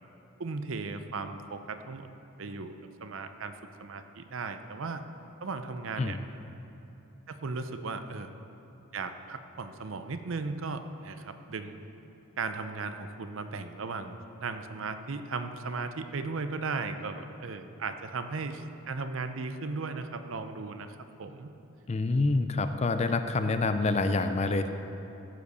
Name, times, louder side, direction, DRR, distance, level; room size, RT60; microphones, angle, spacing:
voice 1, 0.4-2.1 2.4-3.5 3.8-5.0 5.4-6.2 7.3-8.3 8.9-11.8 12.4-21.5, right 4 dB, 60° right, 9 dB, 0.6 m, -36 dB
voice 2, 21.9-24.8, left 3 dB, 30° left, 9 dB, 0.4 m, -27 dB
14.5 x 5.1 x 6.7 m, 2.9 s
head